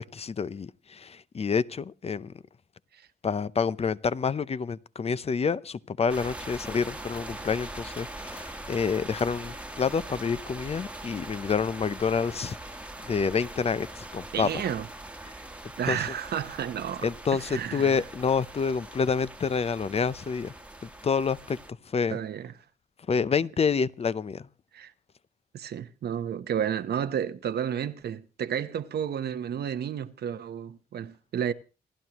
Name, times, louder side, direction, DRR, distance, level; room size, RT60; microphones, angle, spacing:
voice 1, 0.0-2.3 3.2-12.8 13.0-14.6 15.9-16.0 17.0-20.5 20.8-21.6 21.9-22.2 23.1-24.5, left 5 dB, 35° left, 0.6 m, -28 dB
sound 1, 6.1-21.7, right 1 dB, 5° right, 1.4 m, -42 dB
voice 2, 14.3-14.9 15.2-15.4 15.8-18.0 22.1-22.5 24.7-24.9 25.5-31.5, right 9 dB, 70° right, 0.9 m, -32 dB
28.0 x 11.0 x 3.0 m
cardioid pair, 90°, 17 cm